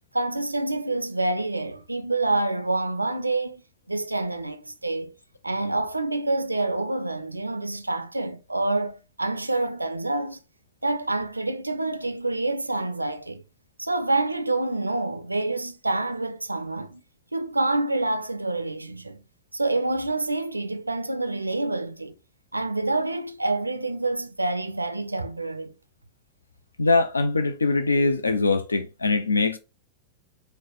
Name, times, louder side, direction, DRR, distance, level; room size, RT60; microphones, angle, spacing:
voice 1, 0.1-3.6 3.9-5.1 5.4-10.4 10.8-13.4 13.8-17.0 17.3-19.2 19.5-22.1 22.5-25.7, right 2 dB, 85° right, 0.4 m, -27 dB
voice 2, 26.8-29.6, left 3 dB, 75° left, 0.4 m, -22 dB
4.6 x 2.1 x 3.8 m
figure-of-eight pair, 90°, 0 cm